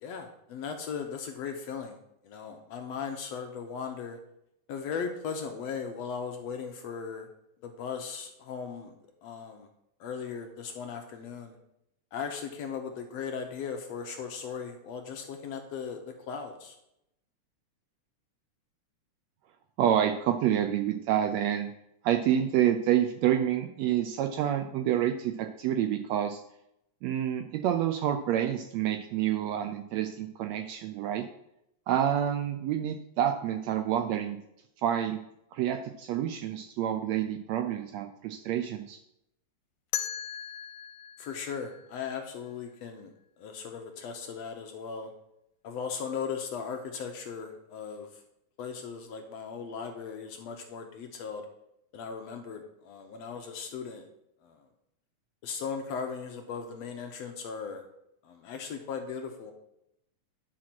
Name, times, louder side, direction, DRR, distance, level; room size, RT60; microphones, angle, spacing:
voice 1, 0.0-2.0 2.2-4.2 4.7-7.3 7.6-9.0 9.2-9.7 10.0-11.6 12.1-16.8 41.2-45.1 45.6-48.2 48.6-51.5 51.9-54.1 54.4-54.7 55.4-57.8 58.2-59.5, left 6 dB, 70° left, 4 dB, 1.7 m, -38 dB
voice 2, 19.8-21.7 22.0-26.4 27.0-31.3 31.9-34.4 34.8-35.2 35.5-39.0, right 10 dB, 80° right, 6 dB, 1.6 m, -28 dB
sound 1, 39.9-42.8, left 10 dB, 90° left, 2.2 m, -39 dB
10.0 x 4.8 x 6.0 m, 0.81 s
omnidirectional pair, 3.5 m